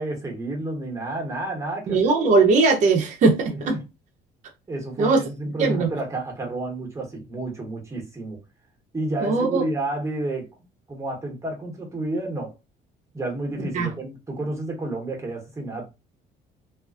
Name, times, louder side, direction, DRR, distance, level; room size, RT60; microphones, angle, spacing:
voice 1, 0.0-2.0 3.5-3.8 4.7-8.4 8.9-10.5 10.9-12.5 13.1-15.9, right 2 dB, 15° right, 1.0 m, -30 dB
voice 2, 1.9-3.8 5.0-5.2 5.6-5.9 9.2-9.6 13.7-13.9, right 4 dB, 45° right, 0.6 m, -19 dB
2.4 x 2.2 x 2.3 m
cardioid pair, 110°, 17 cm